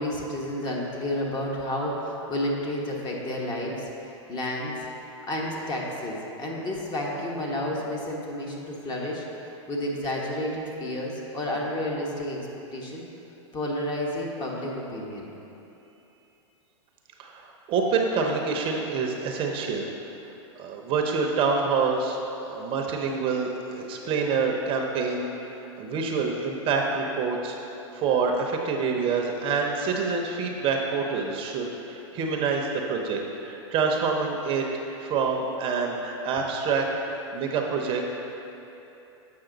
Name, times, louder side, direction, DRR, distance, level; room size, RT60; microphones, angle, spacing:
voice 1, 0.0-4.7 5.3-9.2 9.7-12.4 12.7-13.1 13.5-15.3, left 1 dB, 30° left, -2 dB, 1.2 m, -31 dB
voice 2, 17.2-19.9 20.6-27.6 27.9-34.6 35.0-38.0, right 5 dB, 35° right, 1 dB, 0.7 m, -27 dB
7.7 x 5.6 x 3.9 m, 3.0 s
hypercardioid pair, 120°, 15 cm